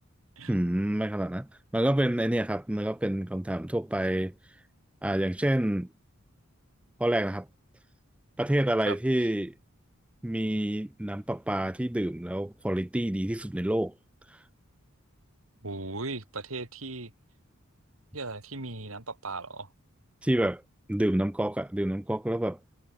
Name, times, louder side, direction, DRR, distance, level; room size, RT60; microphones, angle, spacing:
voice 1, 0.5-1.5 1.7-4.3 5.0-5.9 7.0-7.5 8.4-9.5 10.2-13.9 20.2-20.6 20.9-22.6, right 1 dB, 5° right, 0.4 m, -28 dB
voice 2, 15.6-17.1 18.1-19.7, right 3 dB, 80° right, 3.9 m, -37 dB
head